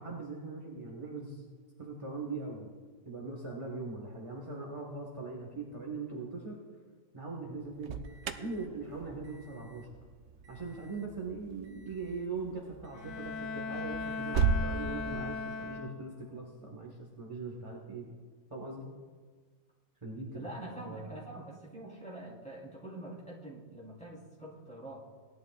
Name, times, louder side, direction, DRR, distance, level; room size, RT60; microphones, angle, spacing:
voice 1, 0.0-1.4 1.8-2.7 3.0-6.6 7.1-8.0 8.3-9.9 10.5-18.1 18.5-18.9 20.0-21.2, right 3 dB, 25° right, -1 dB, 1.5 m, -41 dB
Alarm, 7.5-14.7, right 5 dB, 70° right, 1.0 m, -37 dB
Bowed string instrument, 12.9-16.3, left 4 dB, 65° left, 1.1 m, -38 dB
voice 2, 20.3-25.0, right 1 dB, 5° left, -6 dB, 3.7 m, -45 dB
19.0 x 11.5 x 2.4 m, 1.5 s
omnidirectional pair, 1.4 m